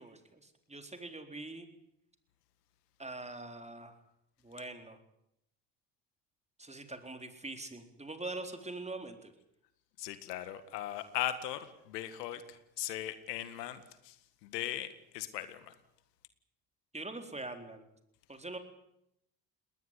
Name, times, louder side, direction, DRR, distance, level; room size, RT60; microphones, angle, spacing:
voice 1, 0.0-1.7 3.0-4.0 4.4-5.0 6.6-9.3 16.9-17.9 18.3-18.6, right 2 dB, 15° right, 6 dB, 4.0 m, -43 dB
voice 2, 10.0-15.8, left 12 dB, 90° left, 12 dB, 1.9 m, -39 dB
20.0 x 19.5 x 9.8 m, 0.80 s
hypercardioid pair, 70°, 47 cm